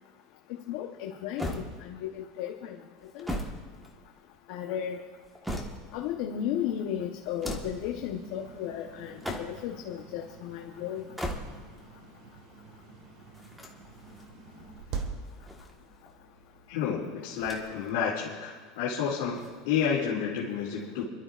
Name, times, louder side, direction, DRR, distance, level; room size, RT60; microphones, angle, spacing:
voice 1, 0.7-2.7 3.1-3.4 4.5-5.0 5.9-11.0, left 10 dB, 60° left, 2 dB, 0.9 m, -34 dB
sound 1, 1.4-2.2 3.0-4.4 5.0-6.1 7.2-7.9 9.0-9.8 11.0-11.8 13.3-14.3 15.2-16.1 17.3-17.9 18.2-18.3 19.3-20.1, equal, 5° right, 1.4 m, -39 dB
sound 2, 5.7-16.8, right 5 dB, 50° right, 1.7 m, -46 dB
voice 2, 16.7-21.0, left 7 dB, 80° left, -7 dB, 2.6 m, -30 dB
28.0 x 12.5 x 2.5 m, 1.4 s
supercardioid pair, 155°, 0 cm